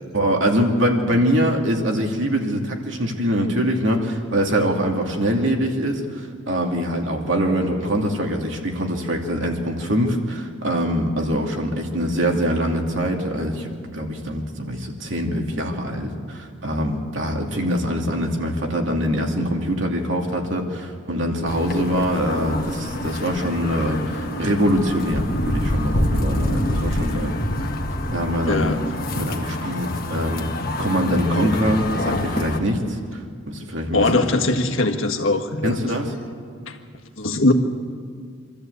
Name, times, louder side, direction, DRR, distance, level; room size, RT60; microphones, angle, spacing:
voice 1, 0.1-27.4 28.1-28.7 29.2-33.2 33.5-34.2 35.6-36.1, equal, 65° right, 1 dB, 2.6 m, -23 dB
sound 1, 21.5-32.6, left 1 dB, 45° left, 1.5 m, -26 dB
voice 2, 28.5-28.9 33.9-35.8 36.7-36.8 37.2-37.5, left 2 dB, 75° left, 4 dB, 1.6 m, -20 dB
26.0 x 13.5 x 8.2 m, 2.1 s
head